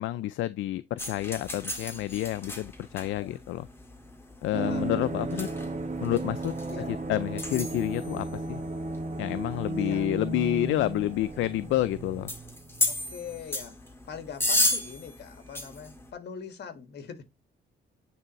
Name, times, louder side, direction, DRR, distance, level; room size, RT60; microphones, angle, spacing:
voice 1, 0.0-3.7 4.4-5.5 6.0-6.5 6.9-8.6 9.2-12.3, left 14 dB, 75° left, 0.4 m, -29 dB
sound 1, 1.0-16.1, left 1 dB, 10° left, 1.8 m, -35 dB
voice 2, 4.5-4.9 6.7-6.9 9.8-10.1 12.9-13.7 14.1-17.2, left 7 dB, 55° left, 1.5 m, -42 dB
sound 2, 4.5-13.0 13.3-13.4, right 2 dB, 35° right, 1.4 m, -35 dB
9.4 x 3.5 x 3.0 m
cardioid pair, 90°, 20 cm